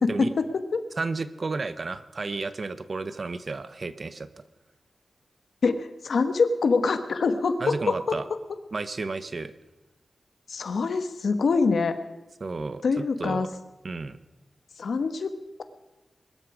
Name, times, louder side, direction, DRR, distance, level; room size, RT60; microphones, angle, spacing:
voice 1, 0.0-0.8 5.6-8.2 10.5-11.9 12.8-13.5 14.8-15.6, left 4 dB, 80° left, 10 dB, 1.3 m, -25 dB
voice 2, 1.0-4.3 7.6-8.2 8.7-9.5 12.4-13.5 13.8-14.2, right 3 dB, 50° right, 14 dB, 0.9 m, -32 dB
21.5 x 12.5 x 5.0 m, 1.1 s
wide cardioid pair, 80°, 0 cm